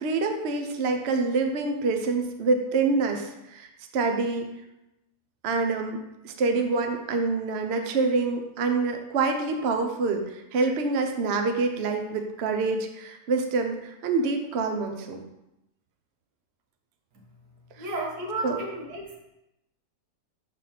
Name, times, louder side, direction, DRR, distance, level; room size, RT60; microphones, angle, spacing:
voice 1, 0.0-4.5 5.4-15.2 18.4-18.6, right 3 dB, 55° right, 4 dB, 0.8 m, -26 dB
voice 2, 17.8-19.2, right 2 dB, 75° right, -1 dB, 1.9 m, -32 dB
6.7 x 4.1 x 5.7 m, 0.90 s
omnidirectional pair, 1.7 m